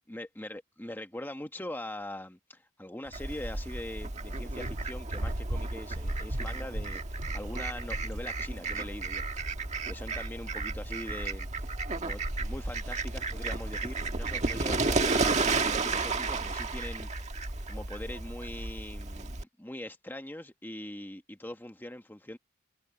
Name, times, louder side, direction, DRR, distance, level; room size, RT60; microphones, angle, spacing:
voice 1, 0.1-9.2 9.9-22.4, left 1 dB, 10° left, 1.2 m, -42 dB
sound 1, 3.0-16.7, right 1 dB, 70° right, 1.7 m, -42 dB
Fowl, 3.1-19.4, right 3 dB, 35° right, 1.7 m, -33 dB
head